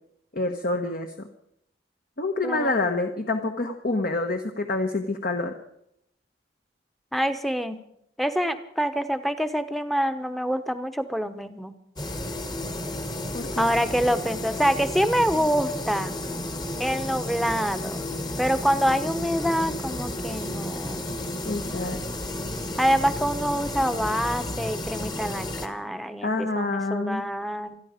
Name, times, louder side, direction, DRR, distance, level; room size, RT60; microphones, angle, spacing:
voice 1, 0.3-1.3 2.2-5.5 13.3-13.7 21.4-22.0 26.2-27.2, left 2 dB, 50° left, 4 dB, 1.2 m, -27 dB
voice 2, 2.4-2.8 7.1-7.8 8.2-11.7 13.6-16.1 16.8-18.1 18.4-21.1 22.8-27.8, equal, ahead, 10 dB, 1.0 m, -26 dB
sound 1, 12.0-25.7, left 1 dB, 20° left, 1.3 m, -32 dB
27.0 x 10.5 x 5.1 m, 0.75 s
head